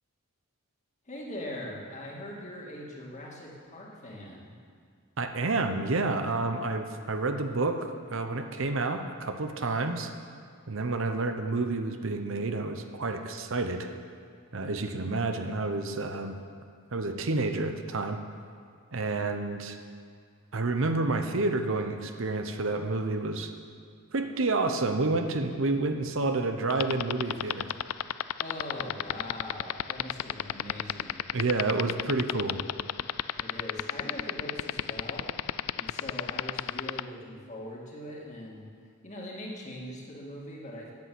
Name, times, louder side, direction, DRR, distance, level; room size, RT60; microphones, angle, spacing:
voice 1, 1.1-4.5 28.4-31.3 33.3-35.3 35.7-38.6 39.0-40.9, left 1 dB, 35° left, -3 dB, 2.2 m, -41 dB
voice 2, 5.2-10.1 10.7-13.9 14.5-16.3 16.9-18.2 18.9-19.8 20.5-23.5 24.1-27.7 31.3-32.6, right 3 dB, 60° right, 6 dB, 0.8 m, -29 dB
sound 1, 26.7-37.0, left 12 dB, 85° left, 0.3 m, -29 dB
10.5 x 8.3 x 7.8 m, 2.2 s
head